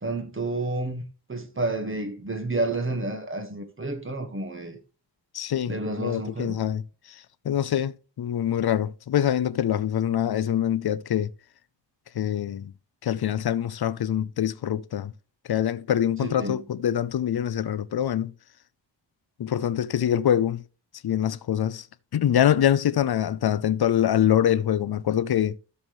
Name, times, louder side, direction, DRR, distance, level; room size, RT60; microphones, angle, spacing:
voice 1, 0.0-1.0 1.3-4.8 5.7-6.6 16.2-16.6, right 2 dB, 25° right, 1.5 m, -30 dB
voice 2, 5.3-6.8 7.4-7.9 8.2-11.3 12.2-12.7 13.0-15.1 15.5-18.3 19.4-20.6 21.0-21.8 22.1-25.5, left 10 dB, 60° left, 0.5 m, -24 dB
12.5 x 7.0 x 3.1 m
wide cardioid pair, 175°, 45 cm